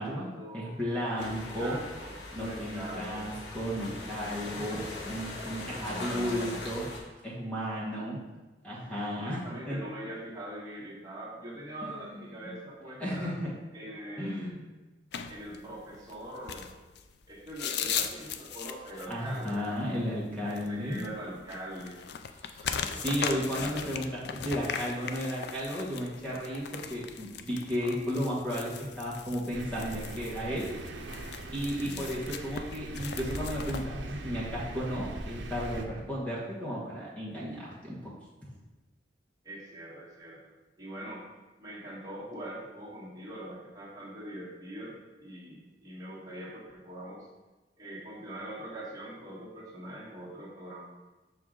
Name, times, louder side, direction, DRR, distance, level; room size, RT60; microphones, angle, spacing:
voice 1, 0.0-1.3 1.6-3.3 5.6-6.6 9.1-13.4 13.7-14.6 15.3-16.7 17.3-19.6 20.4-22.0 22.6-23.9 31.8-32.2 39.4-41.3 41.6-45.0 45.2-47.3 47.8-50.9, right 1 dB, 20° right, -7 dB, 1.5 m, -43 dB
voice 2, 0.5-1.8 2.3-6.9 7.2-8.2 8.6-9.4 9.7-9.8 11.8-12.0 13.0-13.5 14.2-14.6 19.1-21.1 22.5-30.7 31.5-38.1 38.4-38.5, equal, 5° left, -7 dB, 1.3 m, -34 dB
sound 1, 1.2-7.0, left 2 dB, 85° left, 1.2 m, -41 dB
sound 2, 15.1-33.9, left 7 dB, 60° left, 0.4 m, -39 dB
Thunder, 29.5-35.9, right 2 dB, 75° right, 0.6 m, -40 dB
6.1 x 4.7 x 3.7 m, 1.2 s
head